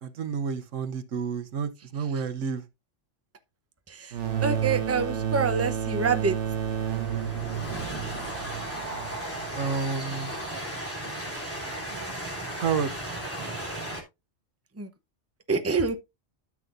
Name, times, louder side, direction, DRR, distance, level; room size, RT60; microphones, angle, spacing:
voice 1, 0.0-2.6 9.6-10.3 12.6-12.9, right 6 dB, 90° right, 1.2 m, -30 dB
sound 1, 4.1-9.6, right 9 dB, 70° right, 1.5 m, -30 dB
Train, 4.3-14.0, right 1 dB, 10° left, 3.2 m, -36 dB
voice 2, 4.4-6.4 14.8-14.9 15.5-16.0, right 4 dB, 15° right, 0.7 m, -26 dB
13.0 x 6.1 x 2.6 m
omnidirectional pair, 1.3 m